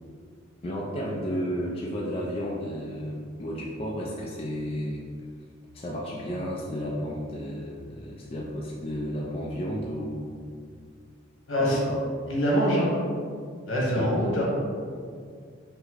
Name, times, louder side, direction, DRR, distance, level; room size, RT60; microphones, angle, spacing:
voice 1, 0.6-5.0 5.7-10.4 11.6-12.0 14.0-14.1, equal, 30° left, -3 dB, 0.4 m, -32 dB
voice 2, 11.5-11.8 12.3-12.9 13.7-14.4, equal, 75° left, -4 dB, 1.2 m, -24 dB
5.3 x 2.1 x 3.9 m, 2.2 s
head